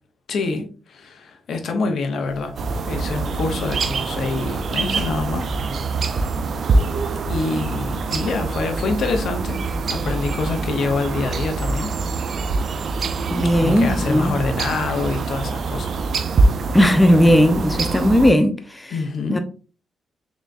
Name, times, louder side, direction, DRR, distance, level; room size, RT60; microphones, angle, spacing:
voice 1, 0.3-2.5 2.9-5.5 7.3-11.9 13.5-16.0 18.9-19.4, left 4 dB, 70° left, 0.8 m, -26 dB
sound 1, 2.3-7.3, right 1 dB, 30° right, 2.0 m, -38 dB
sound 2, 2.6-18.3, right 3 dB, 55° right, 0.4 m, -24 dB
voice 2, 13.3-14.3 16.7-18.9 19.3-19.4, equal, 10° left, 0.5 m, -16 dB
3.8 x 3.5 x 2.5 m
cardioid pair, 100°, 0 cm